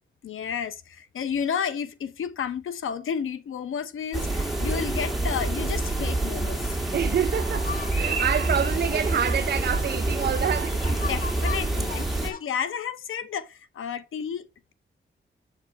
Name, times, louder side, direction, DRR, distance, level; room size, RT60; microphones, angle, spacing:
voice 1, 0.2-6.8 11.1-14.7, left 7 dB, 85° left, 0.8 m, -32 dB
sound 1, 4.1-12.3, right 2 dB, ahead, 2.1 m, -27 dB
voice 2, 6.9-10.9, right 8 dB, 55° right, 0.6 m, -27 dB
sound 2, 7.0-12.4, left 5 dB, 45° left, 1.0 m, -41 dB
7.3 x 5.0 x 4.5 m
cardioid pair, 85°, 20 cm